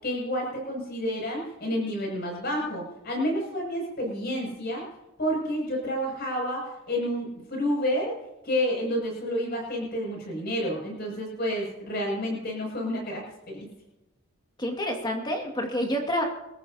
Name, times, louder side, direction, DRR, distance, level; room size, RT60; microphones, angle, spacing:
voice 1, 0.0-4.9 5.2-8.1 8.4-13.7, equal, 50° left, -1 dB, 7.1 m, -29 dB
voice 2, 14.6-16.2, equal, 20° left, 2 dB, 2.2 m, -28 dB
27.5 x 14.0 x 2.9 m, 0.98 s
head